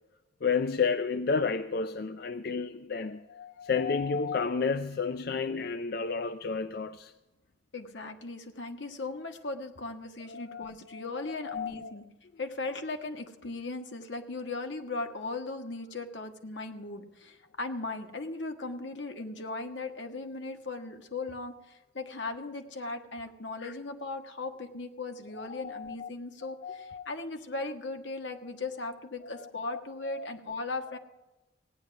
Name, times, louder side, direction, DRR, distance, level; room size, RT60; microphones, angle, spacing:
voice 1, 0.4-7.1 10.3-11.1 11.4-11.9 23.6-23.7 25.5-26.1 26.6-27.1 29.3-29.8 30.0-30.3, left 5 dB, 55° left, 0.4 m, -32 dB
voice 2, 7.7-12.0 12.4-31.0, left 3 dB, 75° left, 1.5 m, -38 dB
16.5 x 9.4 x 5.9 m
head